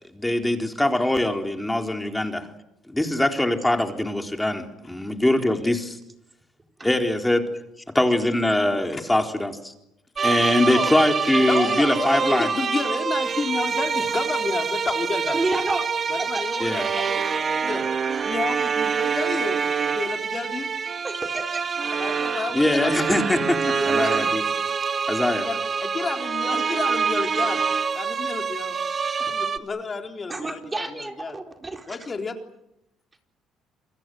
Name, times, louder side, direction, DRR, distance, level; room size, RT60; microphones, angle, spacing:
voice 1, 0.0-2.5 2.9-6.0 6.8-7.5 7.9-9.7 10.2-12.5 16.6-16.9 22.5-24.4 25.1-25.5, left 1 dB, 10° left, 4 dB, 3.9 m, -22 dB
sound 1, 10.2-29.6, right 6 dB, 40° right, 1.8 m, -26 dB
voice 2, 11.5-15.4 16.1-17.2 17.5-17.9 18.2-19.6 19.9-20.7 21.9-23.1 23.8-24.1 25.4-27.6 27.9-28.8 29.2-31.4 31.9-32.4, left 4 dB, 35° left, 4 dB, 3.9 m, -31 dB
voice 3, 15.2-15.9 16.2-16.6 16.9-17.2 21.0-21.6 24.1-24.4 30.3-32.1, right 2 dB, 20° right, 4 dB, 4.4 m, -31 dB
29.0 x 23.5 x 7.9 m, 0.83 s
supercardioid pair, 85°, 0 cm